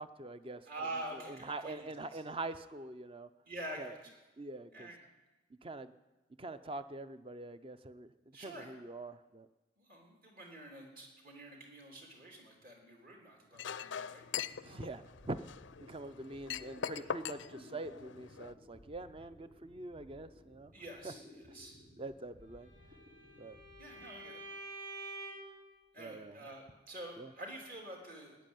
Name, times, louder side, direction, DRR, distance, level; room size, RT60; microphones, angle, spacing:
voice 1, 0.0-0.7 1.1-3.3 3.8-3.9 4.4-4.9 5.6-5.9 6.4-8.1 8.4-9.5 14.6-15.5 15.8-20.7 21.0-21.1 22.0-22.7 23.4-23.6 26.0-26.4 27.2-27.3, right 2 dB, 30° right, 12 dB, 0.6 m, -44 dB
voice 2, 0.7-2.2 3.5-4.1 4.7-5.0 8.3-8.7 9.8-14.2 16.9-17.1 20.7-21.2 21.5-21.8 23.8-24.4 25.9-28.4, right 1 dB, 50° right, 0 dB, 3.5 m, -47 dB
Chink clink, 13.6-18.5, left 8 dB, 70° left, 0.5 m, -42 dB
sound 1, 14.2-24.7, left 1 dB, 85° right, 5.2 m, -59 dB
Bowed string instrument, 22.6-25.6, right 2 dB, 65° right, 6.7 m, -48 dB
14.0 x 10.0 x 9.2 m, 1.1 s
head